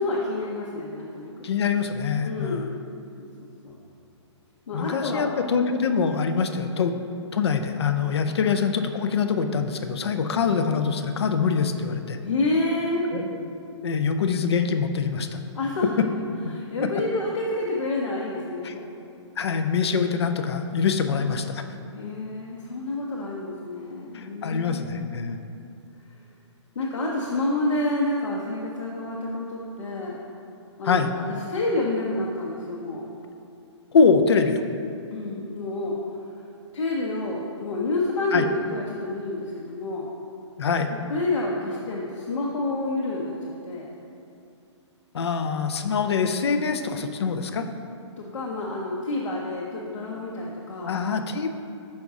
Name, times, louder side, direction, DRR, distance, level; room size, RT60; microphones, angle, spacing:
voice 1, 0.0-1.5 2.2-2.7 3.2-3.8 4.7-5.3 5.7-5.8 8.5-8.6 12.2-13.0 15.5-15.9 16.5-18.9 21.1-21.4 21.9-25.3 26.7-30.2 30.8-33.1 35.1-36.0 36.7-40.1 41.1-43.9 48.2-50.9, left 2 dB, 80° left, -3 dB, 0.8 m, -29 dB
voice 2, 1.4-2.8 4.7-6.9 7.3-12.2 13.1-13.5 13.8-15.4 18.6-18.8 19.4-21.6 24.1-25.4 30.9-31.1 33.9-34.6 38.3-38.4 40.6-40.9 45.1-47.6 50.8-51.5, left 5 dB, 60° left, 7 dB, 0.5 m, -24 dB
5.9 x 5.3 x 3.6 m, 2.6 s
hypercardioid pair, 175°, 15 cm